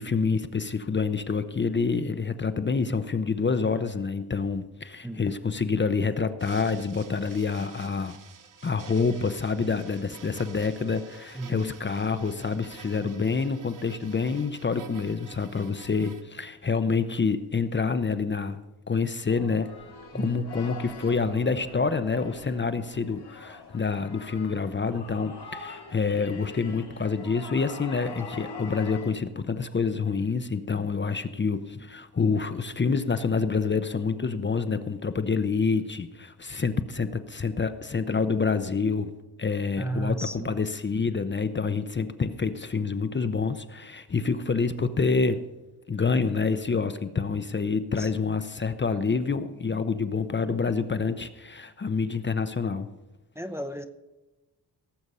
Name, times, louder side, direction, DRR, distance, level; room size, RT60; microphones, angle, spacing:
voice 1, 0.0-8.2 8.6-18.6 18.9-19.7 20.1-39.1 39.4-45.5 45.9-52.9, left 4 dB, 30° left, 11 dB, 0.7 m, -27 dB
sound 1, 6.4-16.2, right 7 dB, 50° right, 1.0 m, -50 dB
voice 2, 11.4-11.7 20.1-20.4 39.8-40.5 48.0-48.1 53.4-53.9, right 1 dB, 5° right, 8 dB, 0.7 m, -33 dB
sound 2, 19.3-29.1, left 4 dB, 70° left, 3.3 m, -43 dB
17.5 x 7.9 x 5.5 m, 1.1 s
wide cardioid pair, 130°, 40 cm